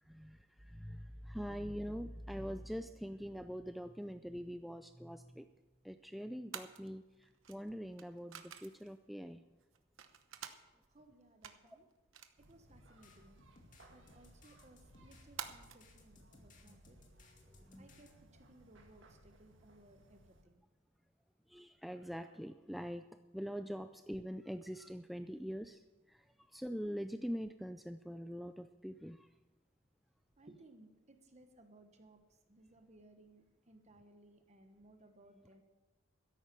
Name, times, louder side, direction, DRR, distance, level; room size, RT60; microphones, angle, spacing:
voice 1, 0.1-5.5 5.8-9.4 16.7-16.8 17.7-17.9 21.5-23.0 23.3-25.8 26.1-26.2 26.5-29.3, equal, ahead, 8 dB, 0.3 m, -44 dB
sound 1, 3.3-15.9, right 8 dB, 80° right, 1.0 m, -54 dB
voice 2, 10.9-11.9 12.4-13.4 13.9-17.0 17.8-20.6 30.4-35.6, right 2 dB, 35° right, 6 dB, 1.2 m, -62 dB
sound 2, 12.4-20.4, right 1 dB, 65° right, 1.9 m, -63 dB
sound 3, 12.7-18.1, left 2 dB, 40° left, 2.3 m, -64 dB
13.0 x 10.5 x 6.9 m, 1.1 s
head